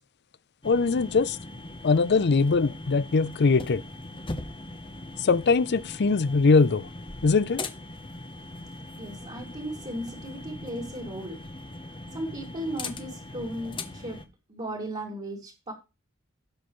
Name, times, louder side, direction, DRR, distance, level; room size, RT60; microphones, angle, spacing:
voice 1, 0.6-1.4 1.8-3.8 5.2-6.9 7.2-7.6, left 4 dB, 55° left, 0.5 m, -22 dB
sound 1, 0.6-14.3, left 2 dB, 25° left, 0.9 m, -40 dB
voice 2, 9.0-11.4 12.1-14.2 14.5-15.7, right 1 dB, 35° right, 2.5 m, -36 dB
16.5 x 6.4 x 3.1 m
head